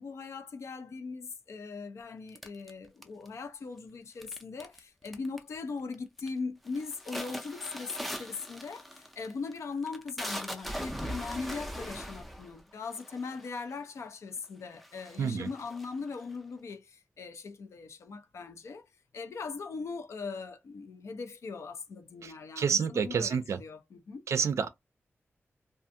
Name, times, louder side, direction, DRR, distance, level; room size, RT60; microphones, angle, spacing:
voice 1, 0.0-18.8 19.1-24.2, left 4 dB, 80° left, 0.4 m, -40 dB
sound 1, 2.4-3.5 4.2-4.8 5.1-5.6 5.9-6.3 6.7-13.7 14.4-14.5 14.8-16.4, equal, ahead, 0.4 m, -40 dB
voice 2, 15.2-15.5 22.2-23.6 24.3-24.7, right 6 dB, 85° right, 0.3 m, -29 dB
2.6 x 2.3 x 2.5 m
wide cardioid pair, 150°, 5 cm